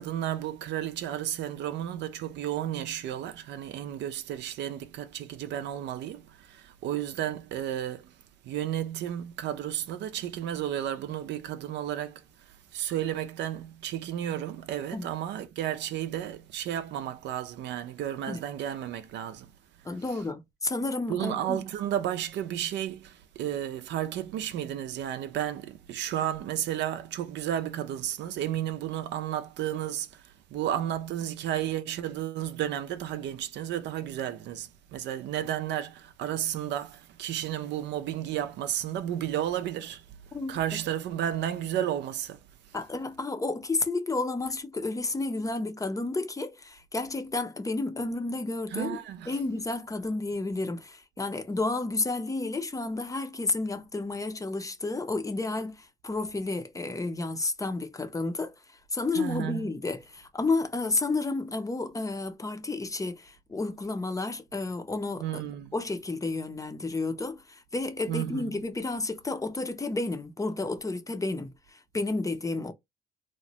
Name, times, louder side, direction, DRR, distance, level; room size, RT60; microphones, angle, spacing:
voice 1, 0.0-8.1 8.4-19.5 19.9-20.2 21.1-40.0 40.3-42.4 48.7-49.4 59.2-59.7 65.2-65.7 68.1-68.6, right 11 dB, 70° right, 0.5 m, -33 dB
voice 2, 19.8-21.6 40.3-40.8 42.7-49.0 49.3-58.5 58.9-65.4 65.7-72.7, left 3 dB, 15° left, 0.6 m, -31 dB
3.0 x 2.1 x 2.8 m
supercardioid pair, 70°, 19 cm